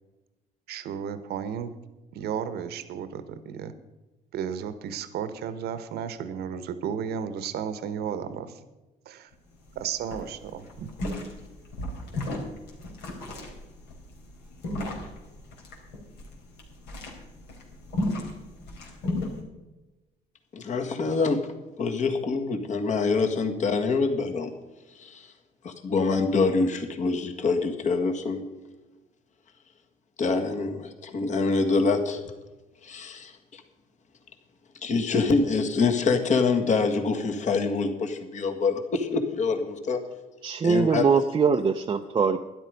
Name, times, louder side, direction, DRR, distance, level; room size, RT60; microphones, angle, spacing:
voice 1, 0.7-1.8 2.1-3.7 4.3-8.6 9.0-9.3 9.7-10.9, right 8 dB, 70° right, 12 dB, 1.1 m, -33 dB
sound 1, 9.3-9.4 9.7-9.8 10.1-19.4, left 1 dB, 85° left, 3.5 m, -34 dB
voice 2, 20.5-21.4 21.8-24.5 25.0-25.3 25.6-28.4 30.2-32.2 32.8-33.6 34.8-40.0 40.6-41.1, left 4 dB, 45° left, 5 dB, 1.7 m, -25 dB
voice 3, 40.4-42.4, right 5 dB, 30° right, 4 dB, 0.6 m, -22 dB
12.5 x 11.0 x 5.2 m, 1.1 s
cardioid pair, 110°, 17 cm